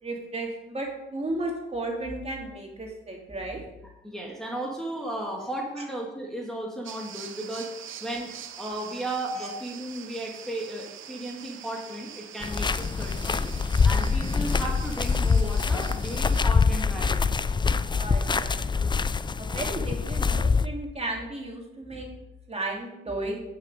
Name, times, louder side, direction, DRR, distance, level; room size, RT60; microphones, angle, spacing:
voice 1, 0.0-3.6 9.3-9.5 13.7-13.8 17.9-18.9 19.4-22.1 22.5-23.4, right 2 dB, 30° right, 0 dB, 2.6 m, -34 dB
voice 2, 4.0-7.7 8.0-13.4 13.8-17.5, right 1 dB, ahead, -2 dB, 1.9 m, -35 dB
sound 1, 6.8-16.4, right 9 dB, 70° right, 0.8 m, -44 dB
sound 2, 12.4-20.7, left 5 dB, 20° left, 0.4 m, -25 dB
9.0 x 6.3 x 4.9 m, 0.94 s
cardioid pair, 65°, 21 cm